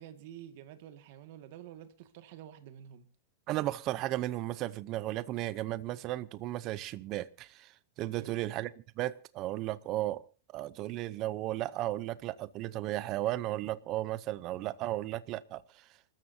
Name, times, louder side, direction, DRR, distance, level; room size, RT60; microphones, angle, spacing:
voice 1, 0.0-3.1 8.0-8.3, right 10 dB, 50° right, 1.9 m, -49 dB
voice 2, 3.5-7.7 8.0-8.7 9.0-10.2 10.5-15.8, right 15 dB, 30° right, 0.7 m, -35 dB
28.0 x 13.5 x 2.7 m
supercardioid pair, 170°, 0 cm